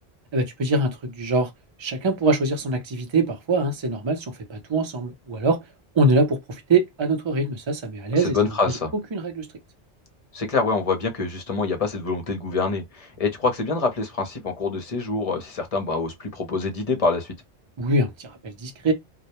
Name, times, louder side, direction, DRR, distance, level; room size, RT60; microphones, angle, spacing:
voice 1, 0.3-1.5 1.8-5.6 5.9-8.4 8.7-8.8 9.1-9.5 17.8-18.9, right 2 dB, 30° right, 0.6 m, -23 dB
voice 2, 8.2-8.9 10.3-17.3, left 4 dB, 40° left, 0.6 m, -25 dB
2.2 x 2.1 x 2.9 m
omnidirectional pair, 1.1 m